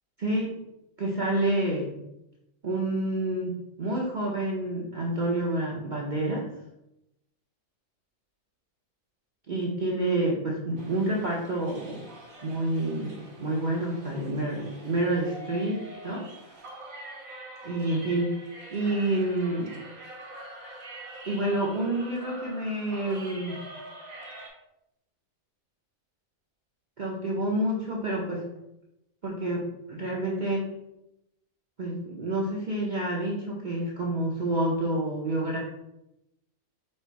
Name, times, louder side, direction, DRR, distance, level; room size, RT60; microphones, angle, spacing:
voice 1, 0.2-0.5 1.0-1.9 2.6-6.5 9.5-12.1 12.4-16.6 17.6-18.3 18.7-19.7 21.3-23.6 27.0-28.4 29.2-30.7 31.8-35.6, right 1 dB, 45° right, -4 dB, 0.7 m, -28 dB
sound 1, 10.8-24.5, right 1 dB, 75° right, 1.3 m, -45 dB
4.3 x 2.5 x 4.5 m, 0.86 s
omnidirectional pair, 1.4 m